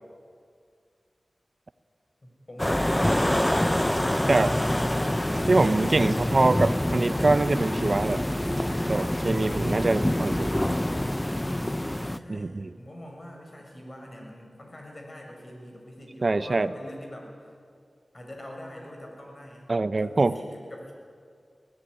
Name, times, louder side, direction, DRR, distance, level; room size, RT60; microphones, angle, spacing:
voice 1, 2.2-3.6 4.5-5.1 11.5-17.6 18.1-19.7 20.0-20.9, left 1 dB, 40° left, 1 dB, 6.7 m, -44 dB
sound 1, 2.6-12.2, left 1 dB, 15° left, 0.7 m, -26 dB
voice 2, 5.5-8.3 8.9-10.5 12.3-12.7 16.2-16.7 19.7-20.4, right 3 dB, 55° right, 14 dB, 0.7 m, -24 dB
21.5 x 17.0 x 9.9 m, 2.2 s
cardioid pair, 50°, 0 cm